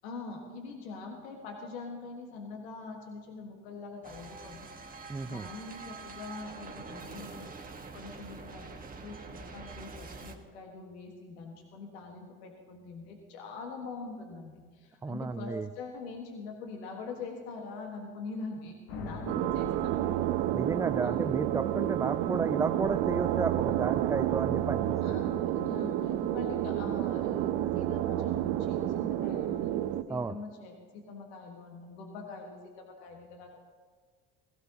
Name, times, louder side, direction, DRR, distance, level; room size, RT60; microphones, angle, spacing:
voice 1, 0.0-4.8 5.2-7.5 7.9-20.2 21.0-21.2 25.0-29.8 30.1-33.6, left 4 dB, 85° left, 2 dB, 1.6 m, -43 dB
sound 1, 4.0-10.4, right 4 dB, 25° right, 1.5 m, -45 dB
voice 2, 5.1-5.5 15.0-15.7 20.5-25.3 30.1-30.4, right 4 dB, 10° right, 9 dB, 0.4 m, -33 dB
sound 2, 18.9-21.0, left 3 dB, 65° left, 1.7 m, -44 dB
sound 3, 19.3-30.0, right 12 dB, 65° right, 0.7 m, -30 dB
16.5 x 16.0 x 2.9 m, 1.5 s
hypercardioid pair, 70°, 32 cm